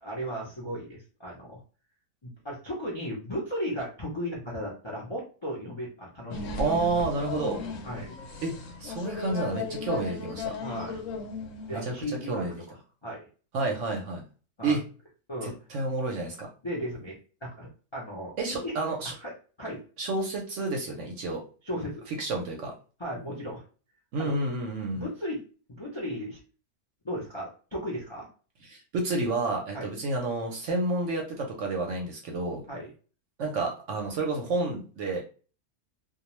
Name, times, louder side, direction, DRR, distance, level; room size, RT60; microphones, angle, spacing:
voice 1, 0.0-1.6 2.2-6.7 7.8-8.1 10.6-11.0 11.7-12.4 13.0-13.2 14.6-14.8 15.3-15.5 16.6-18.7 19.0-19.3 19.6-19.8 21.6-22.0 23.0-23.6 24.2-24.4 24.9-25.4 25.8-26.4 27.0-28.3 29.7-29.9 32.7-32.9, equal, 40° left, -4 dB, 0.4 m, -35 dB
sound 1, 6.3-11.8, left 4 dB, 65° left, 0.8 m, -36 dB
voice 2, 6.6-7.6 8.4-8.5 8.8-10.6 11.7-12.5 13.5-14.2 14.6-14.8 15.4-16.5 18.4-19.1 20.0-21.4 22.2-22.7 24.1-25.1 28.7-32.6 33.4-35.2, right 2 dB, 65° right, 1 dB, 0.8 m, -30 dB
2.3 x 2.3 x 3.0 m, 0.37 s
omnidirectional pair, 1.6 m